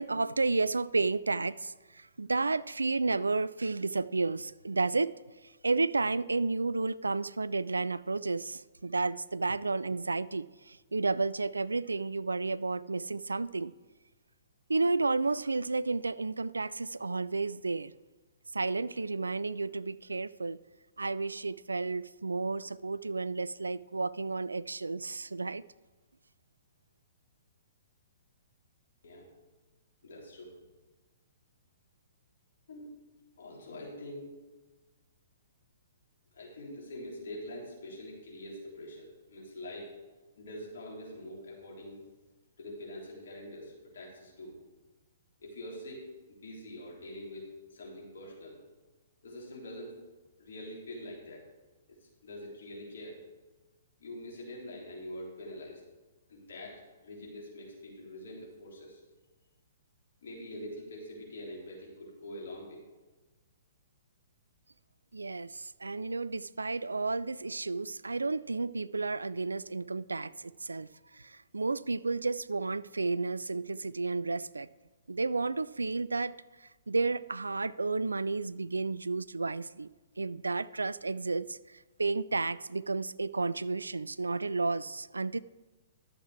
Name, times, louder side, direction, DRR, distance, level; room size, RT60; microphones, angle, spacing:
voice 1, 0.0-5.2 5.6-13.7 14.7-17.9 18.5-20.6 21.0-25.6 65.1-74.7 75.1-76.3 76.9-79.9 80.2-85.4, right 3 dB, 80° right, 0.3 m, -32 dB
voice 2, 30.0-30.5 32.7-32.9 33.4-34.3 36.3-39.9 40.4-42.0 42.6-44.5 45.4-46.0 46.3-48.6 49.2-50.0 50.4-51.4 52.2-53.2 54.0-55.8 56.3-59.0 60.2-62.8, left 1 dB, 60° left, 3.5 m, -44 dB
11.5 x 7.4 x 4.7 m
figure-of-eight pair, 115°, 0 cm